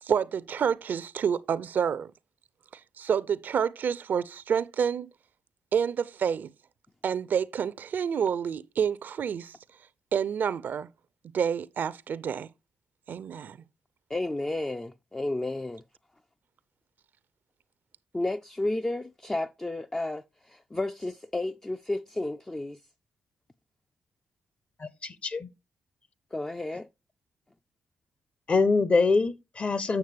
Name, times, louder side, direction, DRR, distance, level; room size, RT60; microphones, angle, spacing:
voice 1, 0.0-2.1 2.7-5.1 5.7-6.5 7.0-9.6 10.1-10.9 11.3-12.5 13.1-13.6, right 7 dB, 60° right, 0.5 m, -28 dB
voice 2, 14.1-15.8 18.1-22.8 26.3-26.9, left 2 dB, 15° left, 0.3 m, -32 dB
voice 3, 24.8-25.5 28.5-30.0, left 4 dB, 40° left, 0.8 m, -24 dB
8.0 x 6.5 x 3.3 m
supercardioid pair, 55°, 3 cm